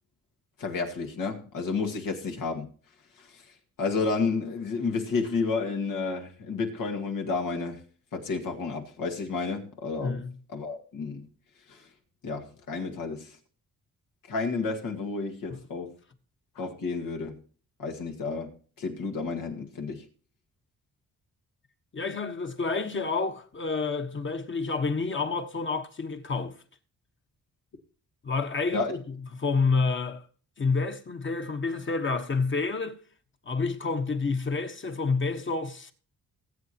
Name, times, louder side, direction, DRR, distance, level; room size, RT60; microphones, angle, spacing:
voice 1, 0.6-2.7 3.2-7.8 8.1-10.2 10.5-11.3 11.7-11.9 12.2-13.4 14.2-15.9 16.6-17.4 17.8-20.1 28.7-28.9, left 4 dB, 80° left, 2.0 m, -31 dB
voice 2, 10.0-10.3 15.5-15.6 21.9-26.5 28.2-29.0 29.3-30.2 30.6-33.0 33.4-35.9, left 4 dB, 35° left, 1.3 m, -29 dB
19.5 x 8.1 x 2.9 m
cardioid pair, 95°, 33 cm